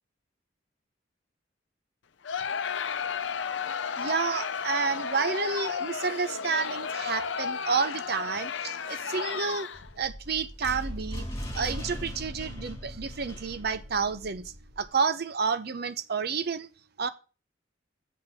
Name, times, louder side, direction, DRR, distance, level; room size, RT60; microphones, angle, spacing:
Crowd, 2.2-10.0, left 6 dB, 75° left, 0.6 m, -33 dB
voice 1, 4.0-9.7 10.0-11.3 11.5-16.7 17.0-17.1, right 5 dB, 60° right, 0.8 m, -30 dB
sound 1, 9.7-14.9, equal, 20° left, 2.9 m, -39 dB
7.5 x 5.8 x 6.8 m
head